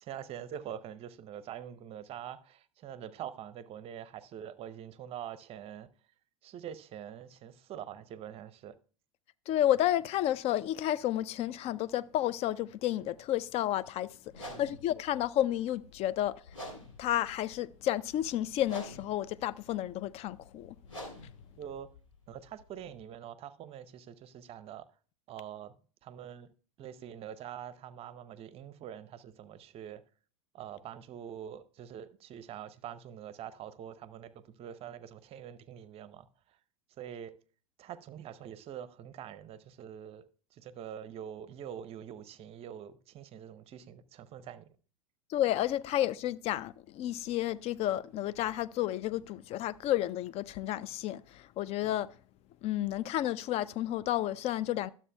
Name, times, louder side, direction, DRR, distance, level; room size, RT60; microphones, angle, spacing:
voice 1, 0.0-5.9 6.4-8.7 14.4-14.8 21.6-21.9 22.3-24.9 25.3-25.7 26.0-26.5 26.8-30.0 30.5-36.6 37.0-37.3 37.8-40.2 40.5-44.7, right 9 dB, 35° right, 0.7 m, -45 dB
voice 2, 9.5-14.1 14.3-16.4 17.0-20.8 45.3-52.1 52.6-54.9, left 13 dB, 40° left, 0.4 m, -31 dB
sound 1, 14.3-23.0, left 1 dB, 85° left, 3.4 m, -49 dB
12.0 x 7.3 x 2.2 m
hypercardioid pair, 85°, 16 cm